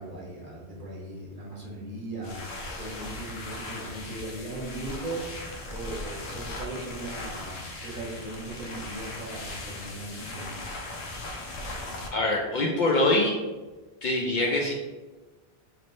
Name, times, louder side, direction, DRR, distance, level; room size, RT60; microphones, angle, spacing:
voice 1, 0.0-5.2 5.7-10.5, right 2 dB, 55° right, -2 dB, 1.0 m, -38 dB
sound 1, 2.2-12.1, left 2 dB, 90° left, 0.9 m, -38 dB
voice 2, 12.1-13.3 14.0-14.7, left 2 dB, 55° left, -1 dB, 0.6 m, -24 dB
3.0 x 2.6 x 4.3 m, 1.2 s
omnidirectional pair, 1.1 m